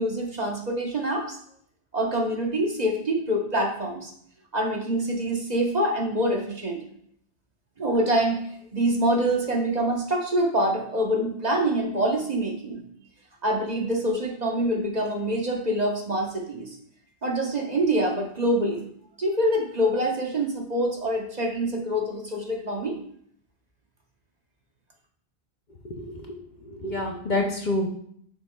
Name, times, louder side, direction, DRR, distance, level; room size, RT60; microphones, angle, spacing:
voice 1, 0.0-1.4 1.9-4.1 4.5-6.8 7.8-8.5 8.7-12.8 13.4-16.7 17.2-18.8 19.2-23.0, right 1 dB, 40° right, 0 dB, 1.2 m, -25 dB
voice 2, 25.8-27.9, left 2 dB, 50° left, 2 dB, 0.8 m, -28 dB
6.7 x 6.5 x 2.3 m, 0.65 s
omnidirectional pair, 1.1 m